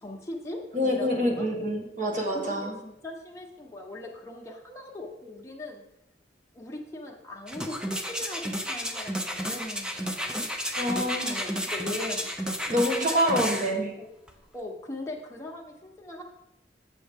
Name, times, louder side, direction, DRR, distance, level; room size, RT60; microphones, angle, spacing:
voice 1, 0.0-1.5 2.3-5.8 6.5-10.0 10.9-12.3 13.1-14.1 14.5-16.2, left 2 dB, 15° left, -1 dB, 1.2 m, -40 dB
voice 2, 0.7-2.8 10.7-11.4 12.7-13.9, equal, 50° right, 1 dB, 1.4 m, -26 dB
sound 1, 7.5-13.7 14.3-14.4, equal, 5° right, 0.6 m, -32 dB
7.7 x 6.9 x 3.6 m, 0.87 s
head